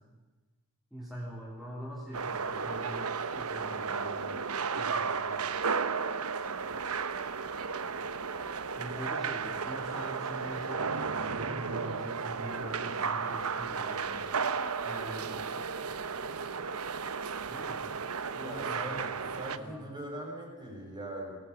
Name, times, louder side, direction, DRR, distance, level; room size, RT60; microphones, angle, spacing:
voice 1, 0.9-4.5 4.8-5.5 8.8-14.3 14.8-15.5 17.5-17.8 18.3-19.8, equal, ahead, -6 dB, 3.6 m, -44 dB
sound 1, 2.1-19.6, right 5 dB, 75° right, 1.0 m, -34 dB
voice 2, 18.3-21.4, right 1 dB, 20° right, 0 dB, 6.0 m, -41 dB
22.0 x 17.5 x 8.2 m, 1.2 s
head